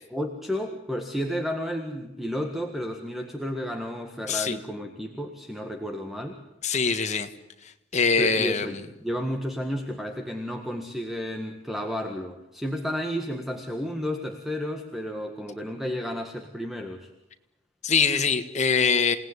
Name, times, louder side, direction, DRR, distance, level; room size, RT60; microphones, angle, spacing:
voice 1, 0.1-6.4 8.2-17.1, equal, ahead, 3 dB, 1.7 m, -32 dB
voice 2, 6.6-7.3 7.9-8.8 17.8-19.2, left 5 dB, 35° left, 7 dB, 1.7 m, -23 dB
28.0 x 18.5 x 9.8 m, 0.95 s
head